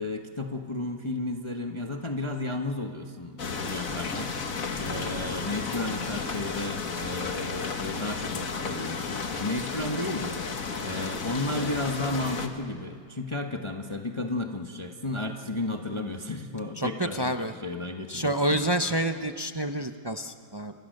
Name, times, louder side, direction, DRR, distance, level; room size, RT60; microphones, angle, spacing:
voice 1, 0.0-4.4 4.8-18.6, left 2 dB, 20° left, 3 dB, 1.2 m, -33 dB
sound 1, 3.4-12.5, left 4 dB, 55° left, 1.9 m, -33 dB
voice 2, 16.8-17.5 18.1-20.7, right 1 dB, 40° right, 7 dB, 0.3 m, -28 dB
30.0 x 26.0 x 6.6 m, 2.1 s
omnidirectional pair, 1.8 m